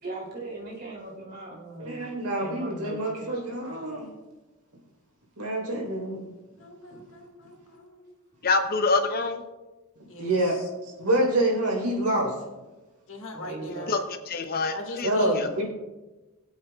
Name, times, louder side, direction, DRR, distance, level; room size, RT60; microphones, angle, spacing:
voice 1, 0.0-2.1 2.4-3.4 13.3-13.9, right 2 dB, 45° right, -2 dB, 3.0 m, -39 dB
voice 2, 1.8-4.1 5.4-6.2 10.2-10.6 10.8-12.3 15.0-15.6, right 1 dB, 70° right, -2 dB, 3.8 m, -26 dB
voice 3, 6.6-8.1 10.1-10.3 13.1-14.0 14.7-15.4, left 2 dB, 60° left, 2 dB, 1.9 m, -40 dB
voice 4, 8.4-9.4 13.9-14.0 14.3-15.1 15.4-15.5, left 3 dB, 45° left, 7 dB, 0.7 m, -25 dB
22.0 x 8.1 x 2.3 m, 1.1 s
head